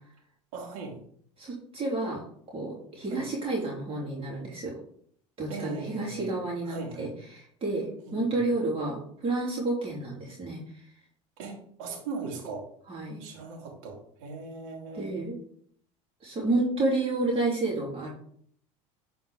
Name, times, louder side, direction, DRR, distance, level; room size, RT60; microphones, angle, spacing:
voice 1, 0.5-1.0 3.1-3.2 5.5-6.3 6.6-7.1 8.0-8.4 11.4-12.7 13.2-15.1, right 4 dB, 75° right, 1 dB, 2.8 m, -39 dB
voice 2, 1.4-2.2 2.5-4.7 5.4-10.8 12.9-13.2 14.9-15.4 16.2-18.1, right 2 dB, 35° right, -4 dB, 3.3 m, -30 dB
10.5 x 4.3 x 3.7 m, 0.62 s
hypercardioid pair, 90°, 17 cm